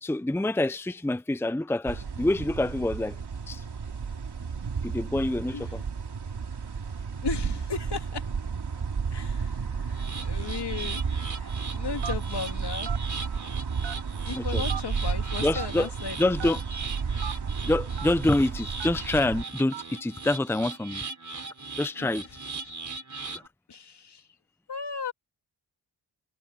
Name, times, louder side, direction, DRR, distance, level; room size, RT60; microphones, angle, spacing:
voice 1, 0.0-3.2 3.5-3.6 4.8-5.8 14.3-14.6 15.4-15.9 16.2-16.6 17.6-21.0 21.8-22.3 23.3-23.4, left 2 dB, 5° left, 0.7 m, -26 dB
sound 1, 1.9-19.4, right 5 dB, 65° right, 3.0 m, -32 dB
voice 2, 7.2-8.3 9.1-11.0 11.4-12.9 14.2-16.6 22.0-22.1 22.6-22.7 23.7-24.3 24.7-25.1, left 6 dB, 65° left, 2.9 m, -36 dB
sound 2, 9.9-23.5, right 4 dB, 45° right, 5.4 m, -39 dB
Telephone, 12.0-12.3 12.8-13.0 13.8-14.2 14.7-14.8 15.5-15.7 16.4-16.5 17.2-17.3 18.0-18.1 18.8-19.0 19.7-19.9, right 8 dB, 80° right, 1.3 m, -36 dB
cardioid pair, 70°, 43 cm